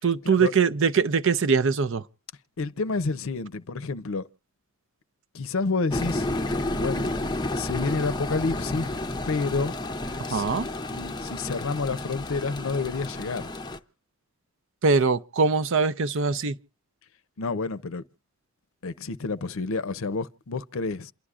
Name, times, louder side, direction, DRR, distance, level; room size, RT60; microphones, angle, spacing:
voice 1, 0.0-2.1 10.2-10.7 14.8-16.5, right 5 dB, 60° right, 0.6 m, -22 dB
voice 2, 2.6-4.2 5.3-6.3 6.7-7.1 7.5-8.9 9.3-9.7 10.3-10.6 10.9-13.5 17.4-18.0 18.8-21.1, left 4 dB, 65° left, 0.6 m, -29 dB
sound 1, 5.9-13.8, left 2 dB, 20° left, 0.6 m, -31 dB
28.0 x 11.0 x 2.4 m
head